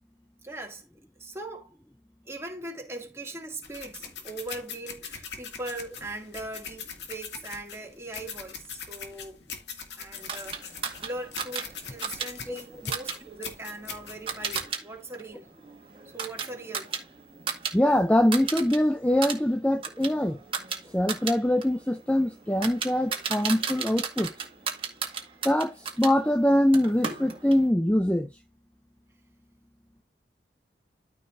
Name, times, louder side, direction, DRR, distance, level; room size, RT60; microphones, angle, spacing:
voice 1, 0.4-0.8 1.2-1.7 2.3-9.4 10.0-15.5 16.1-16.9, right 2 dB, 15° right, 2.3 m, -40 dB
sound 1, 3.6-14.7, left 6 dB, 80° left, 2.3 m, -41 dB
sound 2, 10.3-14.8 15.1-17.8 18.0-18.8 19.1-26.1 26.7-27.6, right 6 dB, 30° right, 1.9 m, -35 dB
voice 2, 17.7-20.4 20.9-24.3 25.4-28.3, left 1 dB, 5° left, 0.5 m, -23 dB
13.5 x 5.3 x 2.6 m
head